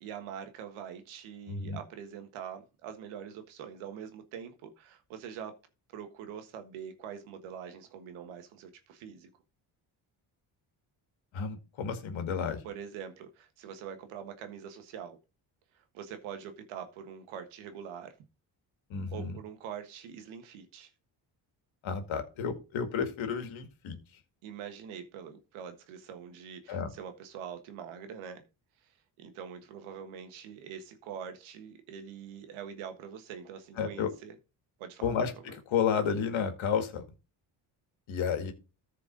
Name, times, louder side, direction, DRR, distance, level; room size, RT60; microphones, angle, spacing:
voice 1, 0.0-5.5 5.9-9.3 12.6-15.2 15.7-18.1 19.1-20.9 24.4-28.5 29.2-34.3 34.8-35.1, right 8 dB, 90° right, 1.5 m, -44 dB
voice 2, 1.5-1.8 11.3-12.6 18.9-19.4 21.8-24.0 26.7-26.9 33.8-34.1 35.0-37.0 38.1-38.5, left 6 dB, 75° left, 2.1 m, -31 dB
14.0 x 4.7 x 3.9 m
supercardioid pair, 65°, 47 cm